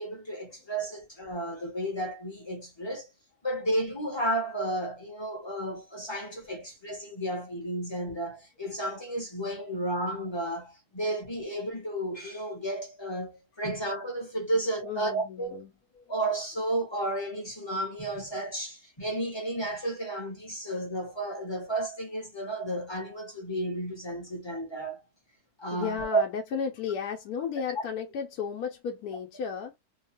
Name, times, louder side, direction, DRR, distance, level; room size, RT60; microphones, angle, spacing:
voice 1, 0.0-3.1 3.4-15.6 16.1-25.0 25.6-26.2, right 1 dB, 25° left, 0.7 m, -32 dB
voice 2, 14.8-16.1 25.7-29.8, left 7 dB, 80° left, 1.1 m, -34 dB
2.7 x 2.3 x 2.8 m
omnidirectional pair, 1.6 m